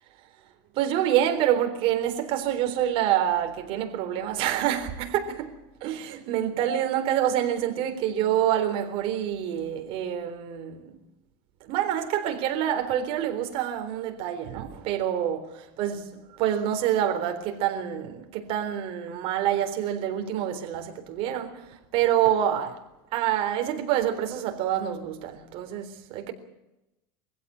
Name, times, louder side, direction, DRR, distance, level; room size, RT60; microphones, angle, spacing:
voice 1, 0.7-11.0 11.6-22.8 23.1-26.3, right 10 dB, 50° right, 3.7 m, -27 dB
23.5 x 16.0 x 8.6 m
supercardioid pair, 145°, 12 cm